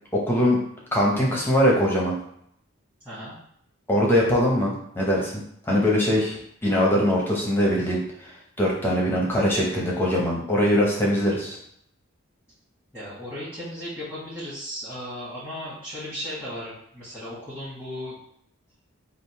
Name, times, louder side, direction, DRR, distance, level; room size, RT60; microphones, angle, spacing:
voice 1, 0.1-0.6 0.9-2.2 3.9-5.3 5.7-8.3 8.6-11.6, equal, 10° left, -3 dB, 0.9 m, -22 dB
voice 2, 3.0-3.4 12.9-18.2, equal, 5° right, -13 dB, 1.5 m, -36 dB
3.6 x 2.5 x 4.6 m, 0.71 s
head